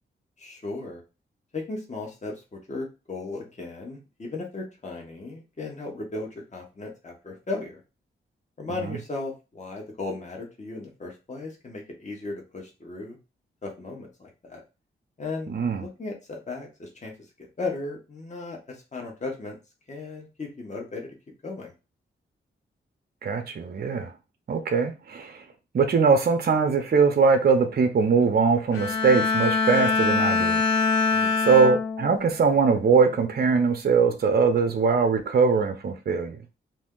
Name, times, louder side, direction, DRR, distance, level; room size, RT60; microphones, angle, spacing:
voice 1, 0.4-1.0 1.5-7.8 8.6-13.2 13.6-14.6 15.2-15.5 15.8-17.1 17.6-19.6 19.9-21.1 21.4-21.7 31.1-31.4, left 3 dB, 35° left, 0 dB, 1.2 m, -36 dB
voice 2, 15.5-15.9 23.2-24.1 24.5-25.4 25.7-30.6 31.4-36.4, right 5 dB, 50° right, 6 dB, 0.6 m, -21 dB
Bowed string instrument, 28.7-32.3 32.8-33.1, left 4 dB, 80° left, 0.6 m, -24 dB
2.6 x 2.1 x 3.7 m, 0.29 s
cardioid pair, 50°, 21 cm